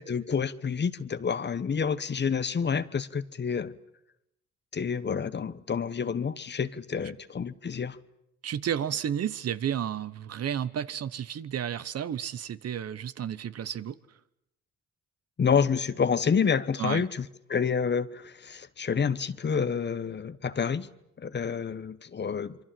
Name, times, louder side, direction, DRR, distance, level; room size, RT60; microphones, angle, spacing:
voice 1, 0.0-3.8 4.7-8.0 15.4-20.9 21.2-22.6, left 6 dB, 35° left, 1.1 m, -28 dB
voice 2, 8.4-14.0 16.8-17.1, right 9 dB, 55° right, 1.1 m, -32 dB
27.0 x 23.5 x 7.6 m
cardioid pair, 90°, 30 cm